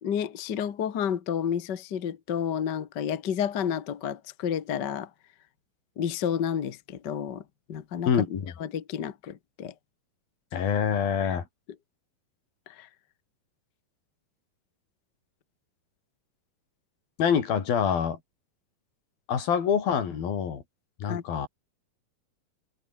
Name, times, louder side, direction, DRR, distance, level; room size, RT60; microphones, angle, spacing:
voice 1, 0.0-5.1 6.0-7.4 7.7-8.2 8.6-9.7 11.2-11.4 12.7-12.9 21.0-21.2, left 8 dB, 55° left, 1.2 m, -30 dB
voice 2, 8.1-8.5 10.5-11.4 17.2-18.2 19.3-20.6 21.0-21.5, left 7 dB, 70° left, 5.0 m, -26 dB
omnidirectional pair, 4.3 m